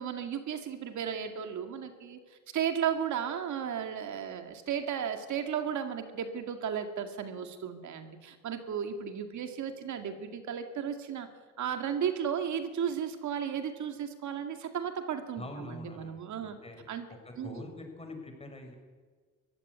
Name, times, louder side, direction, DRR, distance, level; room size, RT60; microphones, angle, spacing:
voice 1, 0.0-2.2 2.5-11.3 11.6-16.6 16.9-17.0 17.4-17.6, right 8 dB, 70° right, 7 dB, 2.3 m, -34 dB
voice 2, 15.4-18.8, left 1 dB, 20° left, 4 dB, 5.9 m, -45 dB
21.5 x 15.5 x 9.6 m, 1.5 s
cardioid pair, 90°, 30 cm